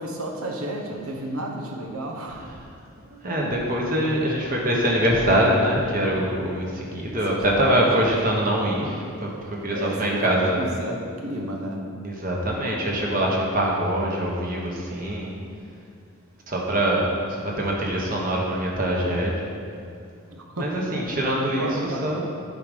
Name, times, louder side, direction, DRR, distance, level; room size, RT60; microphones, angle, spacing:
voice 1, 0.0-2.5 7.1-8.4 9.7-11.8 20.3-21.0 21.5-22.2, right 1 dB, 85° right, 2 dB, 1.1 m, -32 dB
voice 2, 3.1-10.7 12.0-15.3 16.5-17.1 17.4-19.3 20.6-21.7 22.0-22.2, right 1 dB, 40° right, -2 dB, 1.1 m, -24 dB
8.8 x 4.9 x 5.3 m, 2.3 s
head